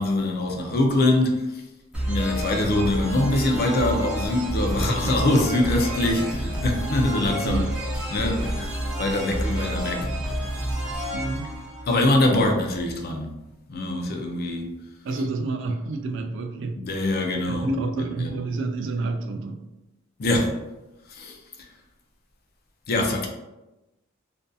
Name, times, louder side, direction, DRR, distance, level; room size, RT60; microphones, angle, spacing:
voice 1, 0.0-1.6 2.0-7.7 8.1-8.7 9.0-10.1 11.9-13.3 13.7-14.7 16.7-18.3 20.2-20.6 21.1-21.4 22.9-23.3, left 1 dB, 50° left, 0.4 m, -23 dB
sound 1, 1.9-12.5, right 1 dB, 5° right, 0.6 m, -29 dB
voice 2, 7.4-7.7 11.1-11.6 15.0-16.8 17.5-19.7, right 3 dB, 65° right, 0.3 m, -29 dB
2.6 x 2.5 x 2.3 m
head